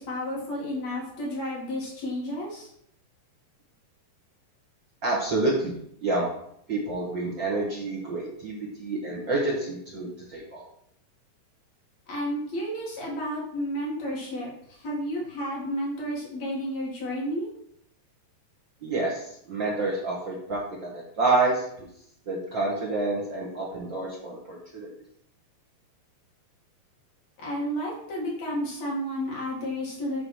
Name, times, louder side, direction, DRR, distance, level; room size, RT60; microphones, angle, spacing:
voice 1, 0.0-2.7 12.1-17.5 27.4-30.2, equal, 50° left, -4 dB, 3.0 m, -31 dB
voice 2, 5.0-6.3 6.7-10.6 18.8-19.2 19.5-21.9 22.3-24.9, right 2 dB, 55° right, -3 dB, 1.3 m, -28 dB
7.8 x 3.9 x 6.3 m, 0.71 s
omnidirectional pair, 4.3 m